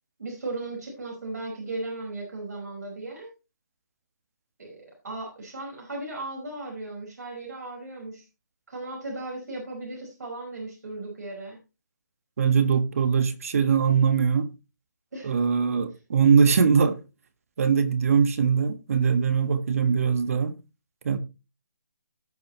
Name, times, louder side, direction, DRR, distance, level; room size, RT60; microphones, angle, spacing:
voice 1, 0.2-3.3 4.6-8.2 8.7-11.6 15.1-15.3, right 2 dB, 70° right, 5.0 m, -36 dB
voice 2, 12.4-14.5 15.2-17.0 17.6-20.5 21.0-21.2, right 6 dB, 55° right, 1.5 m, -21 dB
17.5 x 5.9 x 3.0 m
hypercardioid pair, 160°, 9 cm